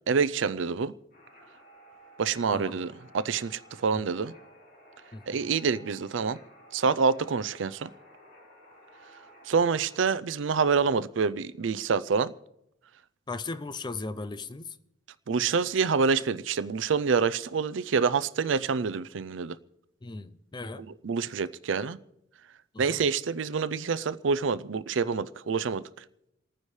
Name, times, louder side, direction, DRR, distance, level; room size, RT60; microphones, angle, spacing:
voice 1, 0.1-0.9 2.2-4.3 5.3-6.4 6.7-7.9 9.5-12.3 15.3-19.6 21.0-22.0 22.8-25.8, right 5 dB, 75° right, 0.5 m, -27 dB
sound 1, 1.1-10.0, right 1 dB, 55° left, 4.6 m, -54 dB
voice 2, 2.5-2.8 3.9-4.0 5.1-5.4 13.3-14.8 20.0-20.9 22.7-23.0, left 3 dB, 25° left, 0.5 m, -37 dB
29.0 x 9.7 x 3.2 m
head